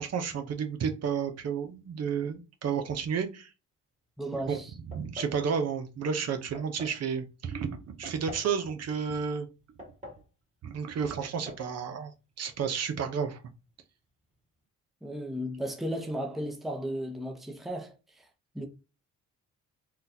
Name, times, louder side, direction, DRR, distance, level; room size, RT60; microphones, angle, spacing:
voice 1, 0.0-3.5 4.5-4.6 4.9-9.5 10.6-12.1 12.4-13.4, right 6 dB, 55° right, 0.7 m, -31 dB
voice 2, 4.2-4.7 15.0-18.3 18.5-18.7, equal, ahead, 0.7 m, -35 dB
sound 1, 4.9-5.4 6.5-7.0 8.0-8.5 9.5-10.3 11.2-11.7 12.0-12.1 13.0-13.4, left 2 dB, 20° right, 2.0 m, -46 dB
3.7 x 2.3 x 2.7 m
cardioid pair, 90°, 30 cm